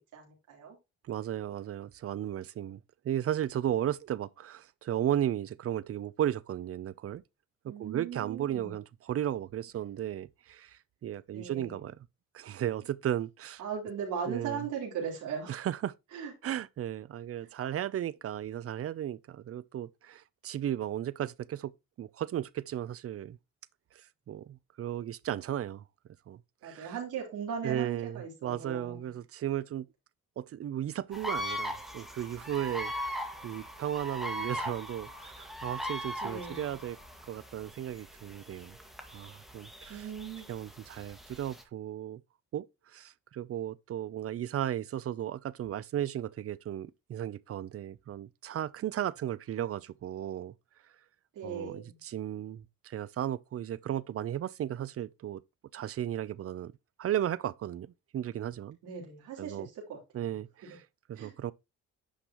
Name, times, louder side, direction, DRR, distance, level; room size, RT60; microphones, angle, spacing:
voice 1, 0.1-0.8 7.7-8.7 11.3-11.8 13.6-15.6 16.1-16.3 17.4-17.5 26.6-29.1 36.2-36.7 39.9-40.4 51.3-52.0 58.8-60.0 60.6-60.8 61.1-61.3, right 6 dB, 85° right, 3.7 m, -38 dB
voice 2, 1.1-7.2 7.6-12.0 12.3-13.6 14.3-14.6 15.5-15.9 16.4-21.7 22.0-23.4 24.0-25.8 26.3-26.9 27.6-29.9 30.4-37.0 37.3-38.8 39.1-40.1 40.5-42.2 42.5-42.6 42.9-50.5 51.4-55.4 55.7-56.7 57.0-58.8 59.4-59.7 60.1-61.5, right 11 dB, 50° right, 0.5 m, -35 dB
sound 1, 31.1-41.6, equal, ahead, 1.8 m, -40 dB
10.0 x 5.3 x 3.0 m
cardioid pair, 90°, 30 cm